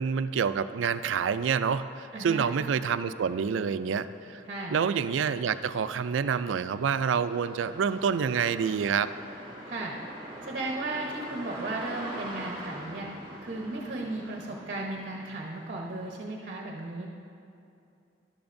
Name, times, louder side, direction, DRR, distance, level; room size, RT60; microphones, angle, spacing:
voice 1, 0.0-4.4 4.7-9.1, right 6 dB, 80° right, 13 dB, 0.4 m, -27 dB
voice 2, 2.1-2.5 4.5-4.8 9.7-9.9 10.5-13.1 13.4-17.1, right 2 dB, 45° right, -1 dB, 0.9 m, -35 dB
sound 1, 3.3-16.1, right 1 dB, 25° right, 2.6 m, -44 dB
14.0 x 11.5 x 2.6 m, 2.5 s
head